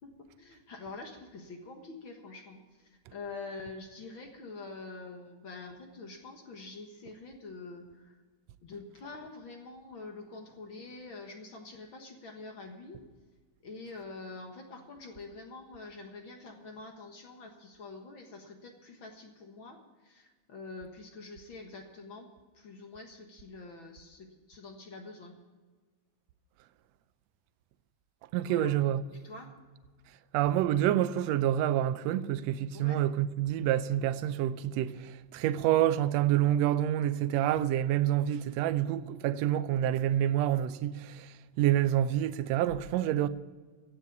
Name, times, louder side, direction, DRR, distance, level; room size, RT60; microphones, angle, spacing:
voice 1, 0.0-8.2 8.6-13.0 13.6-22.3 22.5-25.4 28.5-28.7 29.1-29.5 32.7-33.0, left 3 dB, 50° left, 1.8 m, -46 dB
voice 2, 28.3-29.0 30.3-43.3, right 12 dB, 75° right, 1.6 m, -28 dB
16.0 x 7.5 x 8.3 m
omnidirectional pair, 3.5 m